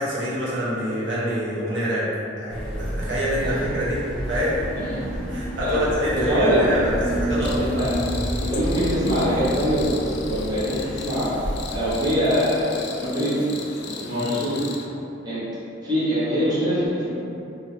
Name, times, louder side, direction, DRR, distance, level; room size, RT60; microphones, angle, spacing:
voice 1, 0.0-2.1 2.4-4.0 4.3-4.9 5.3-7.9 14.1-14.4, right 1 dB, 70° right, -8 dB, 1.0 m, -26 dB
sound 1, 2.5-11.9, equal, ahead, 1.1 m, -30 dB
voice 2, 4.8-5.1 5.6-5.9 6.1-6.6 7.4-7.9 8.4-11.3 11.7-13.4 13.9-14.6 15.2-15.4 15.8-17.1, equal, 20° right, -12 dB, 1.1 m, -24 dB
Cricket, 7.4-14.9, left 5 dB, 60° left, 0.4 m, -38 dB
2.8 x 2.7 x 4.1 m, 2.7 s
head